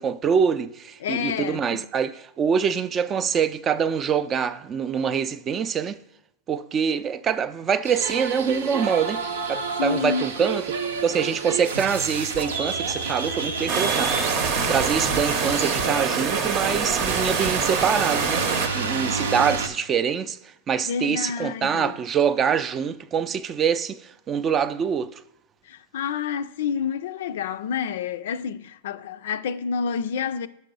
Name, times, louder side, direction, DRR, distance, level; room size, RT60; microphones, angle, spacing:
voice 1, 0.0-6.0 6.5-9.2 9.5-10.6 11.0-18.4 18.7-20.4 20.7-25.2, right 7 dB, 30° right, 0.4 m, -25 dB
voice 2, 1.0-1.8 9.8-10.3 20.8-21.9 25.6-30.5, left 7 dB, 70° left, 0.3 m, -28 dB
sound 1, 7.8-19.7, right 4 dB, 80° right, 0.7 m, -29 dB
sound 2, 13.7-18.7, right 5 dB, 50° right, 0.8 m, -25 dB
5.3 x 4.7 x 5.3 m
hypercardioid pair, 100°, 0 cm